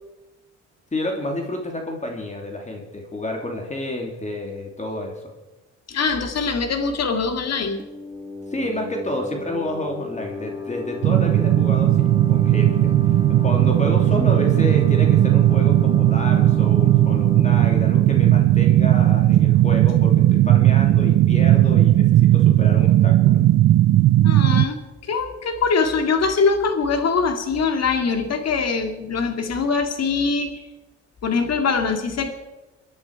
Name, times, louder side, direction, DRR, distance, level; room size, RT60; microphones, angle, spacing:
voice 1, 0.9-5.2 8.5-12.9 13.4-23.4, left 1 dB, 25° left, 2 dB, 2.9 m, -29 dB
voice 2, 5.9-7.8 24.2-30.6 31.2-32.3, left 4 dB, 55° left, 6 dB, 2.3 m, -23 dB
sound 1, 7.8-19.2, left 4 dB, 15° right, 1.7 m, -34 dB
sound 2, 11.0-24.7, right 14 dB, 65° right, 0.5 m, -16 dB
24.0 x 10.5 x 4.7 m, 1.1 s
cardioid pair, 90°, 30 cm